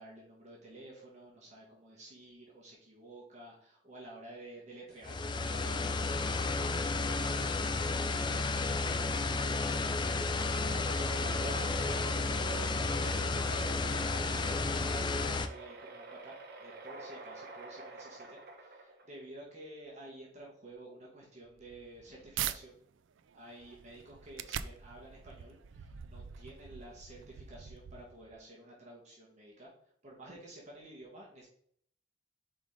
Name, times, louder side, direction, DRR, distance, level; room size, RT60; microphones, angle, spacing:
voice 1, 0.0-5.9 6.3-22.8 23.3-29.7 30.0-31.5, right 1 dB, 40° right, -4 dB, 1.5 m, -51 dB
sound 1, 5.0-15.5, left 3 dB, 25° left, 0.4 m, -32 dB
sound 2, 10.5-19.3, right 3 dB, 55° right, 0.9 m, -47 dB
sound 3, 21.4-22.6 23.1-28.4, right 9 dB, 90° right, 0.4 m, -43 dB
5.1 x 3.7 x 4.9 m, 0.64 s
head